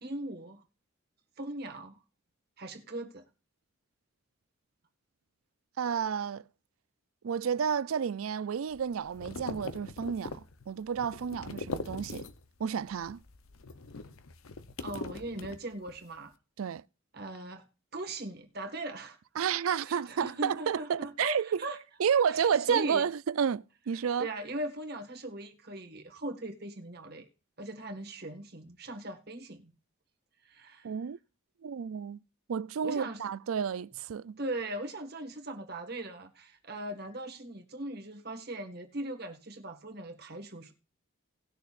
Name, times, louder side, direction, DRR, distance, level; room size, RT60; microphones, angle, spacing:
voice 1, 0.0-0.6 1.4-2.0 2.6-3.2 14.8-16.3 17.1-17.7 17.9-19.2 19.6-21.8 22.3-23.1 24.2-27.3 27.6-29.7 30.4-30.9 32.8-33.2 34.4-40.7, right 1 dB, 50° right, 1.7 m, -39 dB
voice 2, 5.8-6.4 7.2-10.4 10.7-12.3 12.6-13.2 16.6-16.8 19.4-21.6 22.0-24.3 30.8-31.2 31.6-32.2 32.5-34.4, right 7 dB, 85° right, 0.4 m, -31 dB
sound 1, 8.7-12.6 12.9-16.0, left 3 dB, 90° left, 0.7 m, -42 dB
19.0 x 6.5 x 2.5 m
head